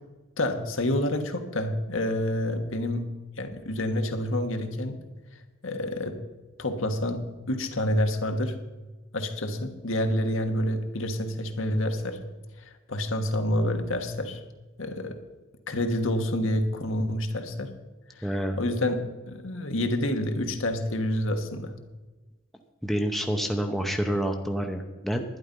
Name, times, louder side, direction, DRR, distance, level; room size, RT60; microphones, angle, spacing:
voice 1, 0.4-3.0 3.4-5.0 5.3-6.2 6.6-7.2 7.5-8.5 9.1-12.2 12.6-14.4 14.8-15.2 15.7-17.7 18.1-21.7, left 1 dB, 65° left, 5 dB, 1.3 m, -28 dB
voice 2, 18.2-18.6 22.8-25.2, equal, ahead, 3 dB, 0.7 m, -28 dB
11.5 x 10.0 x 5.3 m, 1.2 s
head